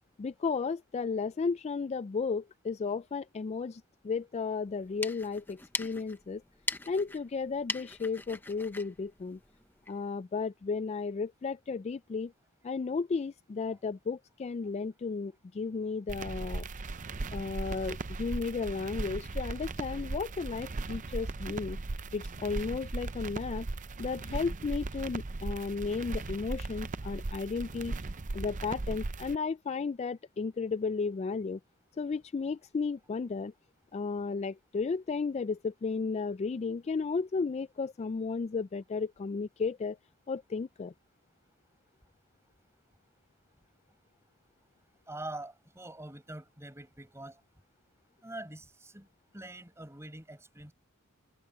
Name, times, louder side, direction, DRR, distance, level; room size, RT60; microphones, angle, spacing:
voice 1, 0.2-6.4 6.9-9.4 9.9-12.3 12.6-16.7 17.3-21.8 22.1-23.7 24.0-27.9 28.3-31.6 32.0-33.5 33.9-40.0 40.3-40.9, left 4 dB, 30° left, 0.3 m, -34 dB
sound 1, 4.7-10.0, left 3 dB, 10° left, 0.8 m, -41 dB
sound 2, 16.1-29.3, right 3 dB, 35° right, 0.6 m, -38 dB
voice 2, 45.1-47.4 48.2-49.1 49.3-50.7, right 1 dB, 10° right, 6.1 m, -44 dB
head